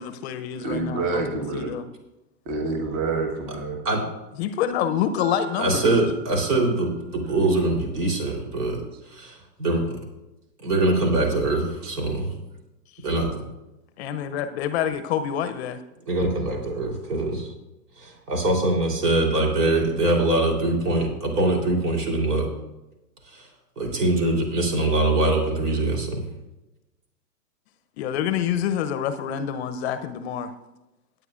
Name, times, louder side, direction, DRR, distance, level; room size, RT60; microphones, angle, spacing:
voice 1, 0.0-1.9 4.4-5.9 13.1-13.2 14.0-15.8 28.0-30.5, left 9 dB, 40° left, 10 dB, 0.7 m, -27 dB
voice 2, 0.5-1.7 2.5-3.8, right 3 dB, 35° right, 2 dB, 1.5 m, -27 dB
Marimba xylophone, 5.2-7.4, right 8 dB, 15° right, 1.7 m, -44 dB
voice 3, 5.6-10.0 10.6-12.3 13.0-13.4 16.1-17.5 18.0-22.5 23.2-23.5 23.8-26.2, right 2 dB, 70° right, 1 dB, 3.6 m, -23 dB
18.0 x 9.0 x 2.5 m, 0.98 s
hypercardioid pair, 115°, 49 cm